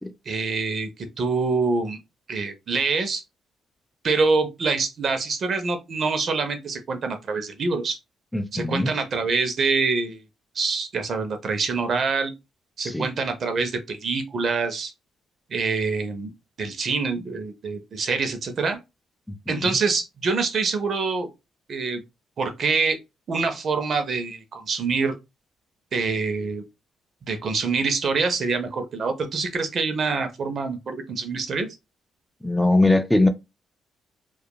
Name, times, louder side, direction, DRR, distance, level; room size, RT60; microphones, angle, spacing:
voice 1, 0.3-2.0 2.3-3.2 4.0-8.0 8.5-10.2 10.5-12.3 12.8-14.9 15.5-16.3 16.6-18.8 19.5-21.3 21.7-22.0 22.4-23.0 23.3-25.2 25.9-26.6 27.3-31.7, right 4 dB, 50° right, 0.6 m, -25 dB
voice 2, 8.3-8.9 12.8-13.1 19.5-19.7 32.4-33.3, left 2 dB, 5° left, 0.3 m, -21 dB
2.7 x 2.3 x 2.2 m
cardioid pair, 90°, 0 cm